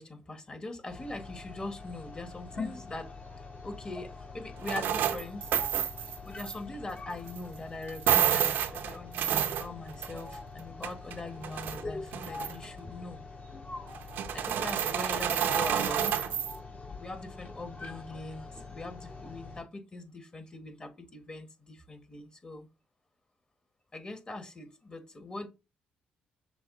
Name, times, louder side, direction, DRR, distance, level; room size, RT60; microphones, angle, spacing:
voice 1, 0.0-3.1 3.4-5.5 6.2-13.2 14.3-16.1 17.0-22.7 23.9-25.5, left 2 dB, 25° left, 1.4 m, -42 dB
sound 1, 0.9-19.6, left 3 dB, 50° left, 1.6 m, -44 dB
sound 2, 4.6-6.5 7.3-7.4 7.9-10.3 10.6-11.8 12.1-12.6 13.9-16.5, right 9 dB, 75° right, 0.6 m, -29 dB
6.1 x 2.3 x 3.8 m
supercardioid pair, 60°, 3 cm